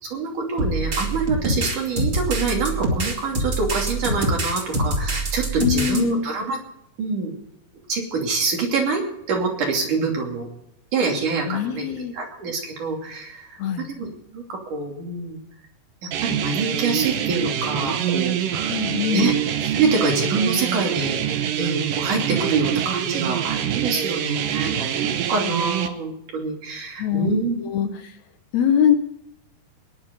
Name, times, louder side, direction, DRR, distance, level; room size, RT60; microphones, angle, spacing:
voice 1, 0.0-6.6 7.0-7.3 7.9-9.0 9.3-10.5 10.9-15.4 16.0-18.8 19.1-19.3 19.6-27.6 27.8-28.0, right 4 dB, 70° right, 0 dB, 4.3 m, -26 dB
sound 1, 0.6-6.0, right 1 dB, 40° right, 3.1 m, -25 dB
voice 2, 5.6-6.3 11.5-12.1 13.6-13.9 18.7-19.3 27.0-28.1 28.5-29.0, left 9 dB, 70° left, 8 dB, 2.0 m, -22 dB
sound 2, 16.1-25.9, right 9 dB, 90° right, 2.7 m, -25 dB
20.5 x 10.5 x 5.3 m, 0.80 s
omnidirectional pair, 3.7 m